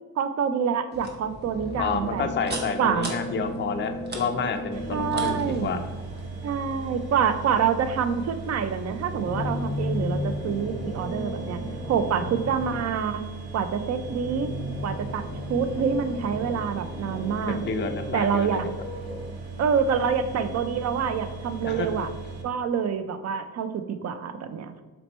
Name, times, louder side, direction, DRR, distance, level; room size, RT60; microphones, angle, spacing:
voice 1, 0.2-2.3 2.8-3.2 4.9-5.8 6.4-13.2 13.5-14.5 14.8-17.6 18.1-18.7 19.6-22.1 22.4-24.8, right 7 dB, 45° right, 11 dB, 0.4 m, -27 dB
sound 1, 0.9-6.3, right 2 dB, 25° right, 0.8 m, -39 dB
sound 2, 1.5-6.1 9.0-13.1 14.0-19.2, left 1 dB, 15° left, 1.2 m, -35 dB
voice 2, 1.8-5.8 17.5-18.6 21.6-22.1, left 5 dB, 30° left, 6 dB, 0.5 m, -29 dB
sound 3, 4.7-22.4, right 4 dB, 85° right, 0.9 m, -38 dB
4.2 x 2.9 x 4.2 m, 1.3 s
cardioid pair, 120°, 37 cm